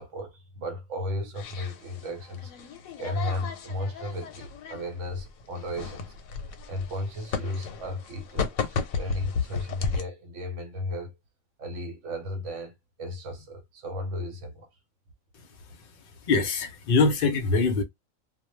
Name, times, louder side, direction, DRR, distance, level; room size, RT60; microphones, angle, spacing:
voice 1, 0.0-2.5 3.0-6.1 6.7-11.2 11.6-12.7 13.0-14.7, left 1 dB, 70° right, 0.9 m, -34 dB
sound 1, 1.3-10.0, left 5 dB, 90° left, 1.0 m, -34 dB
voice 2, 15.3-17.8, left 4 dB, 60° left, 0.6 m, -25 dB
2.2 x 2.1 x 3.0 m
omnidirectional pair, 1.4 m